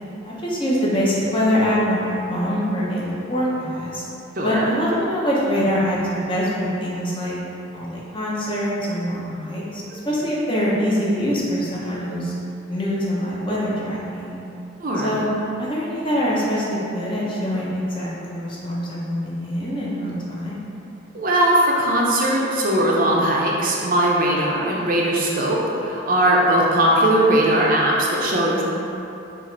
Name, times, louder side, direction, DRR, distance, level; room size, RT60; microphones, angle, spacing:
voice 1, 0.2-4.0 4.4-7.3 7.7-12.3 12.7-14.4 15.0-15.3 15.6-20.6, equal, 25° left, -6 dB, 0.8 m, -24 dB
voice 2, 4.3-4.6 14.8-15.2 21.1-28.6, right 1 dB, 45° right, -4 dB, 0.6 m, -19 dB
4.7 x 2.5 x 4.5 m, 2.9 s
head